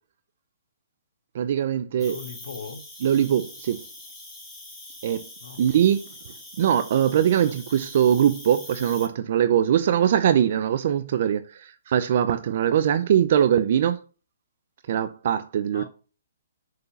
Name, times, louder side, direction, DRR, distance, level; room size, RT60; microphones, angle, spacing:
voice 1, 1.3-2.2 3.0-3.9 5.0-5.2 5.6-6.1 6.6-14.0 14.9-15.8, right 9 dB, 45° right, 0.6 m, -22 dB
voice 2, 1.9-2.8 5.4-5.6 15.7-15.9, left 6 dB, 70° left, 3.3 m, -39 dB
Cricket, 2.0-9.1, left 2 dB, 5° left, 2.8 m, -43 dB
7.1 x 6.7 x 6.9 m
hypercardioid pair, 165°, 0 cm